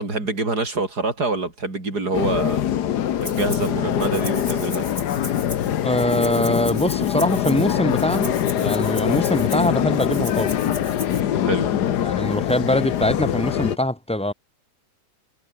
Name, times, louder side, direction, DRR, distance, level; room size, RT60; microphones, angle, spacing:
voice 1, 0.0-2.6 3.2-4.9 11.4-11.7, right 3 dB, 60° right, 6.2 m, -25 dB
sound 1, 2.1-13.8, left 10 dB, 65° left, 1.5 m, -23 dB
Rattle (instrument), 3.2-3.7 4.0-11.2, left 1 dB, 35° left, 8.0 m, -37 dB
voice 2, 5.8-10.6 12.0-14.3, left 1 dB, 5° left, 0.6 m, -23 dB
omnidirectional pair, 2.0 m